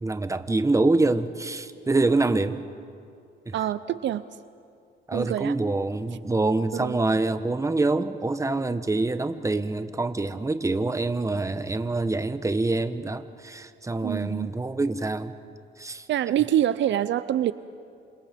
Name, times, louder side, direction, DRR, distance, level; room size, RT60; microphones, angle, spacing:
voice 1, 0.0-2.6 3.5-3.6 5.1-15.3 15.8-16.1, right 2 dB, 15° right, 11 dB, 1.2 m, -25 dB
voice 2, 3.5-4.2 5.1-5.5 6.7-7.0 14.0-14.5 16.1-17.5, right 11 dB, 70° right, 15 dB, 0.6 m, -25 dB
28.0 x 27.0 x 5.2 m, 2.4 s
cardioid pair, 90°, 20 cm